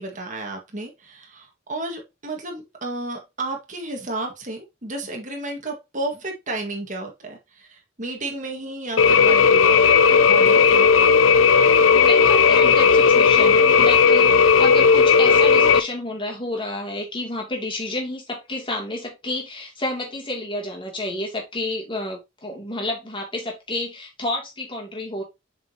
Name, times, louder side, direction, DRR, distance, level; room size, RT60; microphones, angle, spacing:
voice 1, 0.0-9.8 10.3-10.9, right 2 dB, 40° right, 1.8 m, -32 dB
sound 1, 9.0-15.8, left 6 dB, 90° left, 0.5 m, -15 dB
voice 2, 11.9-25.2, left 1 dB, 25° left, 2.6 m, -30 dB
7.4 x 5.1 x 2.9 m
head